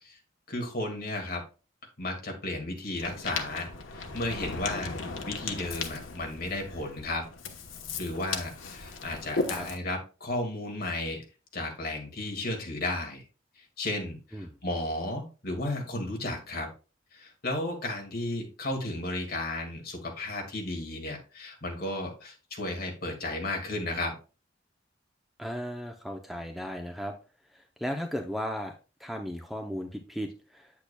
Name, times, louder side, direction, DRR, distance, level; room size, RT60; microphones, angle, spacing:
voice 1, 0.5-1.4 2.0-5.0 5.2-7.3 8.0-11.2 11.5-13.2 13.6-16.7 17.1-24.2, left 1 dB, 50° left, 1 dB, 2.0 m, -34 dB
Ocean, 3.0-9.8, left 4 dB, 85° left, 1.1 m, -36 dB
voice 2, 25.4-27.1 27.5-28.7 29.0-30.7, equal, ahead, 3 dB, 0.6 m, -35 dB
8.4 x 8.2 x 2.3 m, 0.34 s
head